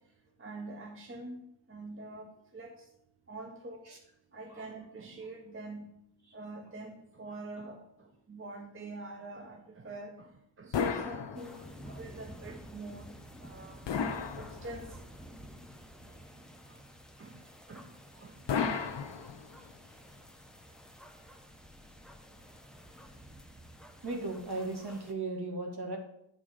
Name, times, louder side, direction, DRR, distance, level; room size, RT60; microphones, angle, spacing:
voice 1, 0.4-1.4 1.7-2.9 3.3-3.9 4.3-5.9 6.3-10.3 10.6-13.8 14.4-15.0 16.7-16.8 17.2-17.3 17.7-17.9 18.2-18.3, right 2 dB, 25° right, 3 dB, 0.8 m, -45 dB
sound 1, 10.7-11.9 13.9-15.1 18.5-19.8, left 6 dB, 60° left, 0.8 m, -34 dB
sound 2, 11.3-25.1, equal, ahead, 0.7 m, -51 dB
voice 2, 24.0-26.0, right 2 dB, 50° right, 2 dB, 1.7 m, -36 dB
9.0 x 3.7 x 5.0 m, 0.74 s
cardioid pair, 90°, 50 cm